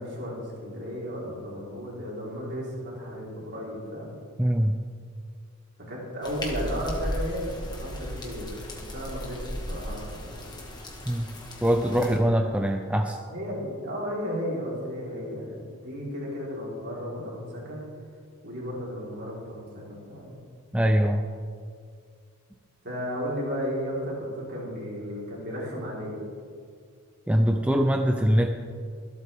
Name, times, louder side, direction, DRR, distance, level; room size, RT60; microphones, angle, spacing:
voice 1, 0.0-4.1 5.9-7.5 7.8-10.6 11.7-12.8 13.3-17.8 18.4-20.4 22.8-26.2, equal, 50° right, -5 dB, 4.1 m, -34 dB
voice 2, 4.4-4.8 11.1-11.3 11.6-13.2 20.7-21.2 27.3-28.5, equal, 5° right, 4 dB, 0.4 m, -23 dB
sound 1, 6.2-12.2, equal, 20° left, 1.7 m, -36 dB
24.5 x 8.4 x 3.6 m, 2.1 s
head